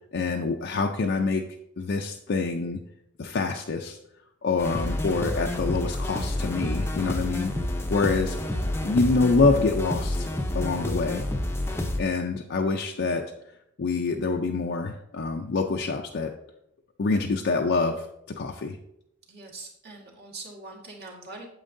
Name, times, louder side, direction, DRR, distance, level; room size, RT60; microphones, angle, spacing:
voice 1, 0.1-2.8 3.2-4.0 4.4-7.5 7.9-8.4 8.8-10.3 10.5-11.3 12.0-13.2 13.8-16.3 17.0-18.8, left 4 dB, 55° left, 2 dB, 0.5 m, -26 dB
sound 1, 4.6-12.0, left 1 dB, 10° left, 0.6 m, -29 dB
voice 2, 19.3-21.5, right 3 dB, 50° right, -2 dB, 1.6 m, -42 dB
8.8 x 7.4 x 2.6 m, 0.78 s
head